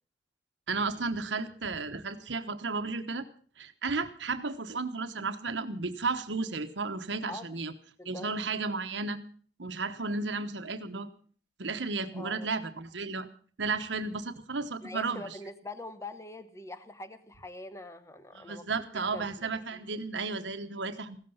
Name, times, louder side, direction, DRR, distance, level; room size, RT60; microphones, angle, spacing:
voice 1, 0.7-3.3 3.6-7.7 8.0-9.2 9.6-11.1 11.6-13.3 13.6-15.2 18.3-21.2, right 4 dB, 85° right, 8 dB, 1.1 m, -33 dB
voice 2, 8.0-8.3 12.1-12.5 14.8-18.6 19.1-19.6, left 2 dB, 15° left, 11 dB, 1.0 m, -43 dB
16.0 x 13.5 x 5.5 m, 0.43 s
head